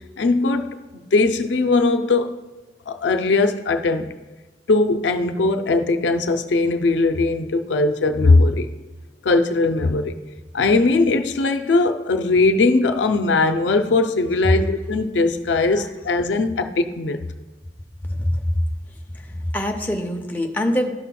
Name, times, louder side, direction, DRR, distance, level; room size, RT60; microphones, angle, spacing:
voice 1, 0.2-2.4 2.9-4.1 4.7-8.7 9.2-10.2 10.5-17.2, left 3 dB, 90° left, 0.5 m, -19 dB
voice 2, 18.0-18.4 19.1-20.9, left 1 dB, 10° left, 0.6 m, -24 dB
13.0 x 5.7 x 2.2 m
head